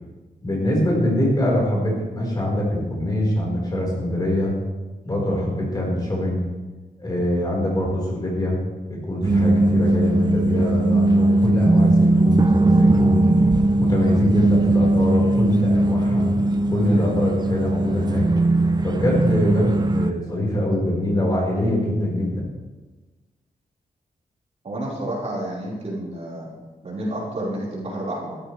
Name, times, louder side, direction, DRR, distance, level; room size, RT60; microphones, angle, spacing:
voice 1, 0.4-4.5 5.0-6.4 7.0-8.6 8.9-13.3 13.8-16.3 16.7-18.3 18.8-22.5, left 1 dB, 25° left, -3 dB, 4.5 m, -23 dB
sound 1, 9.2-20.1, right 2 dB, 30° right, 0.7 m, -19 dB
voice 2, 24.6-26.5 26.8-28.4, right 1 dB, 50° right, -6 dB, 4.6 m, -30 dB
15.5 x 13.5 x 3.3 m, 1.2 s
wide cardioid pair, 135°, 15 cm